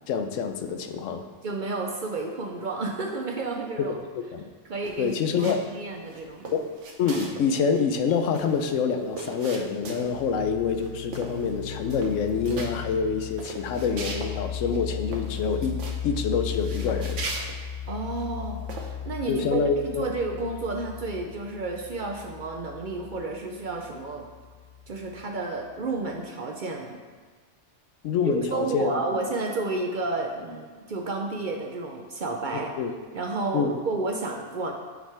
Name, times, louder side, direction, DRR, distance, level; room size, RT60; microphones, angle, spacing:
voice 1, 0.1-1.3 3.8-3.9 4.2-4.5 5.0-5.7 6.5-6.7 7.0-17.2 19.3-20.1 28.0-28.9 32.5-32.9 33.5-33.8, left 5 dB, 85° left, 7 dB, 1.0 m, -26 dB
voice 2, 1.4-4.0 4.7-6.5 17.9-24.3 24.9-27.0 28.3-32.7 33.1-34.7, right 3 dB, 55° right, 2 dB, 0.6 m, -31 dB
sound 1, 4.8-5.7 6.1-7.5 7.7-7.8 8.1-10.3 10.7-10.9 11.1-11.6 11.8-12.7 13.2-14.3 14.7-14.8 15.1-16.0 16.5-18.2 18.7-18.9, right 3 dB, 75° right, 1.2 m, -38 dB
sound 2, 9.8-25.2, left 9 dB, 50° left, 0.5 m, -37 dB
8.9 x 5.0 x 3.3 m, 1.5 s
omnidirectional pair, 1.3 m